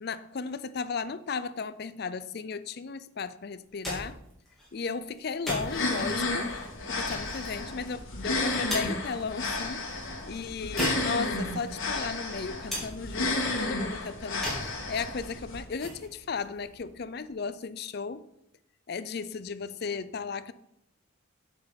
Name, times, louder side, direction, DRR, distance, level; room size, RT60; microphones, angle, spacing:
voice 1, 0.0-4.2 4.7-6.5 6.9-14.5 14.9-18.3 18.9-20.5, left 5 dB, 50° left, 0.4 m, -35 dB
sound 1, 3.6-17.5, equal, ahead, 3.1 m, -41 dB
sound 2, 5.6-15.6, left 2 dB, 80° left, 2.8 m, -32 dB
8.3 x 7.2 x 5.2 m
head